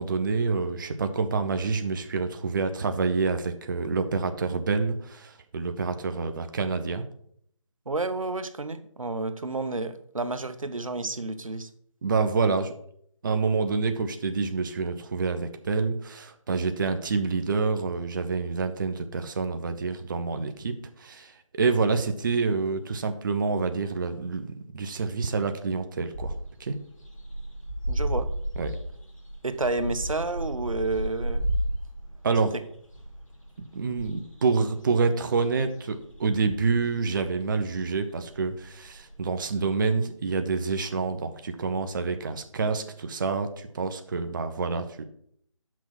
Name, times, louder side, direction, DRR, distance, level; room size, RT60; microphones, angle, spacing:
voice 1, 0.0-7.1 12.0-12.7 13.2-26.3 26.6-26.8 28.6-28.8 32.2-32.5 33.7-45.0, right 4 dB, 40° right, 8 dB, 0.6 m, -27 dB
voice 2, 7.9-11.7 27.9-28.3 29.4-31.5, right 2 dB, 85° right, 11 dB, 0.8 m, -30 dB
sound 1, 26.1-39.9, right 1 dB, 75° left, 2.9 m, -34 dB
6.1 x 6.0 x 5.9 m, 0.66 s
figure-of-eight pair, 155°, 17 cm